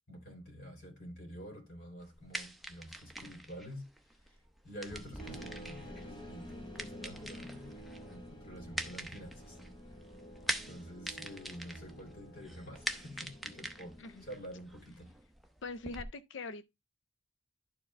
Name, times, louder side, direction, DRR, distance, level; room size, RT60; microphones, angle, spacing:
voice 1, 0.1-3.9 4.3-4.4 4.6-9.6 10.6-15.1, equal, 50° left, 3.6 m, -48 dB
sound 1, 2.0-16.0, right 1 dB, ahead, 0.7 m, -44 dB
sound 2, 5.2-14.9, equal, 25° left, 1.0 m, -50 dB
voice 2, 15.6-16.6, left 3 dB, 70° left, 0.5 m, -42 dB
11.0 x 4.7 x 3.3 m
head